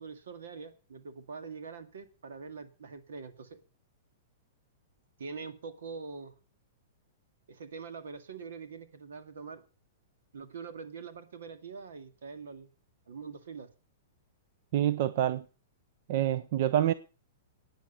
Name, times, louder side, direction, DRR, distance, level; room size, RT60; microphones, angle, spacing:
voice 1, 0.0-3.6 5.2-6.3 7.5-9.6 10.3-12.7 13.1-13.7, right 5 dB, 85° right, 2.0 m, -44 dB
voice 2, 14.7-15.4 16.1-16.9, right 11 dB, 55° right, 0.7 m, -27 dB
11.0 x 9.2 x 6.7 m
hypercardioid pair, 145°, 0 cm